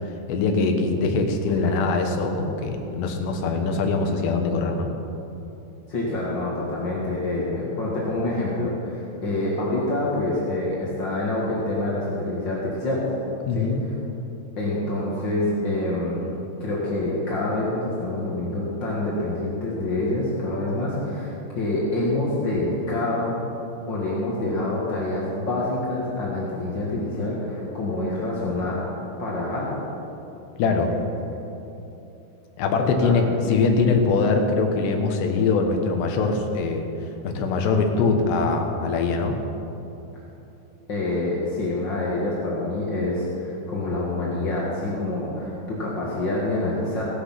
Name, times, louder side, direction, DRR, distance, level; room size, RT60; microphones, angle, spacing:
voice 1, 0.0-4.9 13.5-13.8 30.6-30.9 32.6-36.9 37.2-39.3, left 4 dB, 70° left, 3 dB, 3.3 m, -22 dB
voice 2, 5.9-13.1 13.5-13.7 14.6-16.3 16.6-23.4 23.9-28.8 29.2-29.8 30.7-31.0 32.8-33.2 40.9-47.0, left 2 dB, 50° left, -5 dB, 1.3 m, -26 dB
16.5 x 11.5 x 5.9 m, 2.9 s
omnidirectional pair, 5.4 m